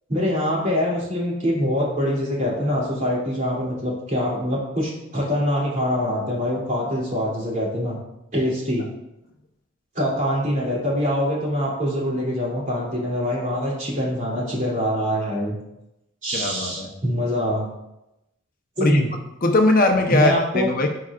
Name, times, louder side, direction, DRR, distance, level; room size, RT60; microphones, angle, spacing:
voice 1, 0.1-8.0 8.3-8.8 9.9-15.6 16.2-17.7 18.8-19.1 20.1-20.7, equal, 40° right, -5 dB, 2.8 m, -24 dB
voice 2, 16.3-16.9 18.8-19.0 19.4-20.9, left 2 dB, 45° left, 3 dB, 0.8 m, -20 dB
14.0 x 4.8 x 2.5 m, 0.90 s
head